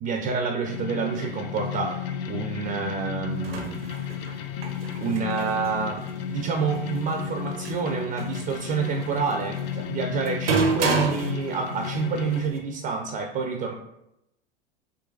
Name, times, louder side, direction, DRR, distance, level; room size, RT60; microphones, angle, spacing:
voice 1, 0.0-3.8 5.0-13.7, right 5 dB, 30° right, 3 dB, 0.4 m, -28 dB
sound 1, 0.7-12.5, left 9 dB, 40° left, 0.4 m, -33 dB
sound 2, 3.3-12.6, right 4 dB, 80° right, 0.7 m, -32 dB
3.8 x 2.7 x 2.3 m, 0.83 s
hypercardioid pair, 85°, 29 cm